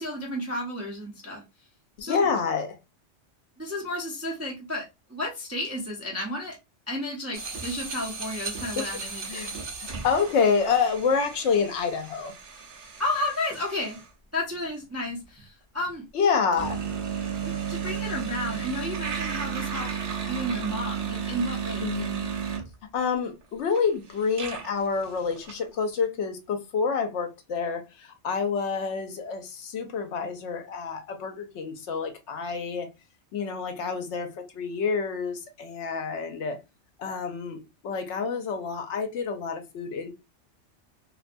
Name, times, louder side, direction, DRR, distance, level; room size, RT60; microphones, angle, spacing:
voice 1, 0.0-1.4 2.0-2.3 3.6-6.6 6.9-9.6 13.0-14.0 14.3-16.1 17.4-19.9 20.2-21.9, left 1 dB, 20° right, 0.4 m, -32 dB
voice 2, 2.0-2.8 8.8-8.9 9.3-9.5 9.8-12.3 16.1-16.8 21.8-22.3 22.9-32.9 33.3-36.6 37.0-40.1, left 5 dB, 70° left, 0.9 m, -28 dB
sound 1, 7.3-14.1 16.5-22.7 23.4-23.5 23.7-25.5, right 6 dB, 55° right, 0.7 m, -34 dB
2.6 x 2.2 x 2.4 m
omnidirectional pair, 1.2 m